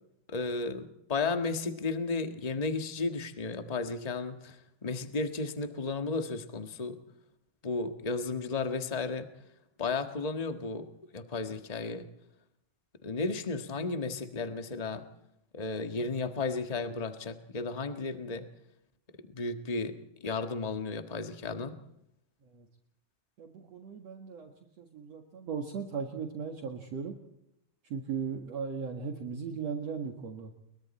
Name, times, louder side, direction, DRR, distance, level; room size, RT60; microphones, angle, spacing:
voice 1, 0.3-7.0 7.6-9.3 9.8-12.1 13.0-15.0 15.5-18.4 19.3-19.9 20.2-21.8, left 3 dB, 80° left, 7 dB, 0.3 m, -34 dB
voice 2, 23.4-24.5 24.8-27.2 27.9-30.5, right 6 dB, 55° right, 4 dB, 2.8 m, -37 dB
29.5 x 23.0 x 4.3 m, 0.78 s
omnidirectional pair, 3.7 m